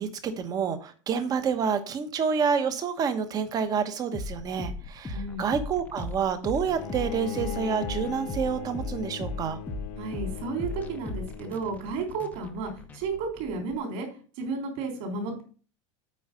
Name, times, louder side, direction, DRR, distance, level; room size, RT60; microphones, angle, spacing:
voice 1, 0.0-9.6, right 6 dB, 20° right, 10 dB, 1.0 m, -28 dB
sound 1, 4.1-13.8, left 2 dB, 10° left, 0.7 m, -37 dB
voice 2, 5.1-5.5 10.0-14.1 14.4-15.4, right 4 dB, 50° right, 2 dB, 3.6 m, -33 dB
Bowed string instrument, 6.7-11.9, left 8 dB, 40° left, 1.0 m, -39 dB
8.5 x 4.8 x 6.7 m, 0.37 s
supercardioid pair, 170°, 17 cm